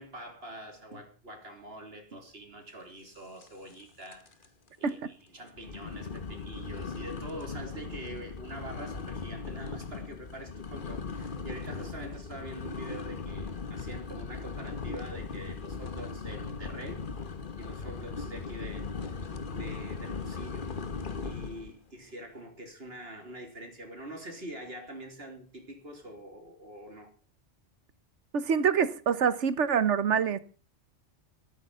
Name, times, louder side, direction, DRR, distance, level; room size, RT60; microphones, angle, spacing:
voice 1, 0.0-17.0 17.6-19.2 19.5-20.7 21.2-27.1, right 1 dB, 55° right, 3.6 m, -45 dB
sound 1, 3.4-3.8 4.1-4.5 4.9-5.0 5.6-21.7, left 4 dB, 45° left, 1.3 m, -38 dB
voice 2, 28.3-30.4, right 7 dB, 80° right, 1.3 m, -26 dB
13.5 x 13.0 x 5.6 m
omnidirectional pair, 1.2 m